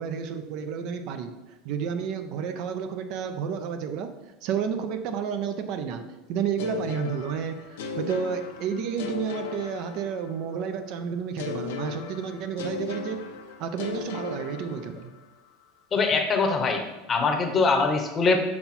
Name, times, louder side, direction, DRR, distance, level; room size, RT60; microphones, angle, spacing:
voice 1, 0.0-4.1 4.4-13.2 13.6-15.1, right 7 dB, 55° right, 8 dB, 0.5 m, -31 dB
sound 1, 6.6-10.5 11.4-15.2, left 6 dB, 80° left, 0.7 m, -36 dB
voice 2, 15.9-16.8 17.1-18.4, left 4 dB, 25° left, 4 dB, 0.8 m, -22 dB
5.6 x 4.3 x 4.2 m, 1.1 s
supercardioid pair, 135°, 0 cm